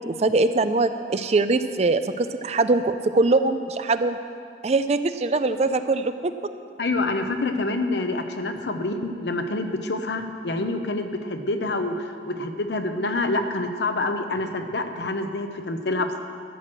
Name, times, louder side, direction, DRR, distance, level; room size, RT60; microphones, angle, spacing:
voice 1, 0.0-4.2 4.6-6.3, right 3 dB, 35° right, 11 dB, 0.4 m, -22 dB
voice 2, 6.8-16.2, left 2 dB, 75° left, 7 dB, 0.9 m, -27 dB
13.0 x 6.3 x 7.5 m, 2.3 s
head